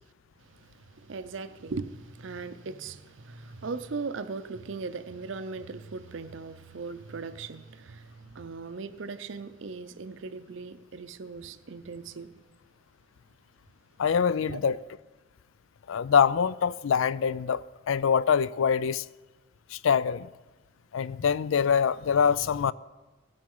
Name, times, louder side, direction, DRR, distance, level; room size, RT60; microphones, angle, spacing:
voice 1, 0.4-12.3 14.5-14.8, right 4 dB, 65° right, 0.6 m, -39 dB
voice 2, 14.0-14.8 15.9-19.1 19.7-20.3 20.9-22.7, left 7 dB, 80° left, 0.4 m, -24 dB
16.5 x 7.7 x 5.5 m
head